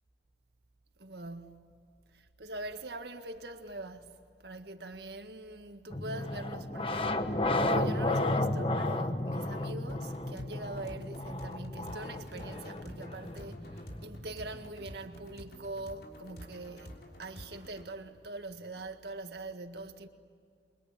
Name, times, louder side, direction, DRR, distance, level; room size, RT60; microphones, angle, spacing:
voice 1, 1.0-1.7 2.1-20.1, right 2 dB, 70° right, 1.8 m, -43 dB
sound 1, 5.9-14.7, left 2 dB, 30° left, 1.1 m, -33 dB
sound 2, 9.9-17.9, equal, 65° left, 3.3 m, -50 dB
28.0 x 23.5 x 8.9 m
head